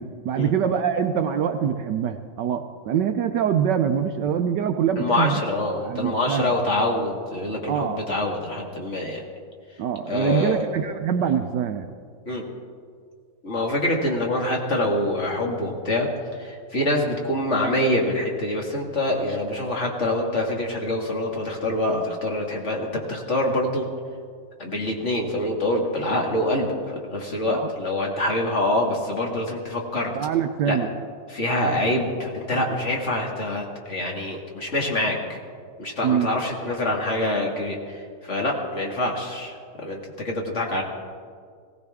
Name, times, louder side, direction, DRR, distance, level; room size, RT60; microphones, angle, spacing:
voice 1, 0.0-5.4 5.8-6.6 7.7-8.0 9.8-11.9 27.5-27.7 30.1-30.9 36.0-36.3, right 8 dB, 70° right, 8 dB, 1.1 m, -24 dB
voice 2, 5.0-9.2 10.1-10.6 12.3-12.4 13.4-16.1 16.4-23.9 24.6-30.1 30.7-30.8 31.3-35.4 35.8-40.8, left 1 dB, 35° left, 0 dB, 2.0 m, -25 dB
18.5 x 17.5 x 3.5 m, 2.1 s
omnidirectional pair, 2.2 m